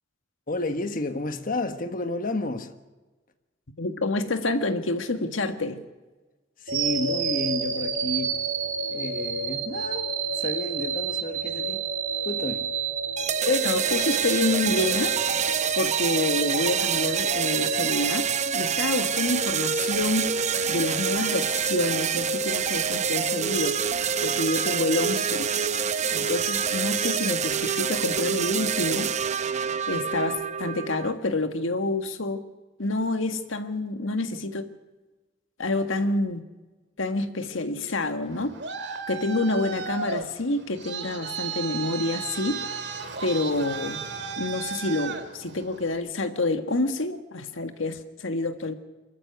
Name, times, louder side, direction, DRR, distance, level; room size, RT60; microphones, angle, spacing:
voice 1, 0.5-2.8 6.6-8.4 8.9-11.9 12.2-12.7, left 2 dB, 45° left, 8 dB, 1.3 m, -31 dB
voice 2, 3.8-5.8 13.5-15.2 15.8-20.3 20.7-23.8 24.2-25.5 26.1-29.1 29.9-32.4 32.8-34.7 35.6-36.4 37.0-38.5 39.1-42.6 43.2-44.1 44.4-48.7, left 2 dB, 90° left, 8 dB, 1.7 m, -28 dB
sound 1, 6.7-18.8, right 5 dB, 80° right, 2.5 m, -30 dB
sound 2, 13.2-31.1, right 7 dB, 35° right, 0.7 m, -26 dB
Traffic noise roadway noise, 38.2-46.0, right 5 dB, 60° right, 2.0 m, -35 dB
24.5 x 13.5 x 8.0 m, 1.2 s
head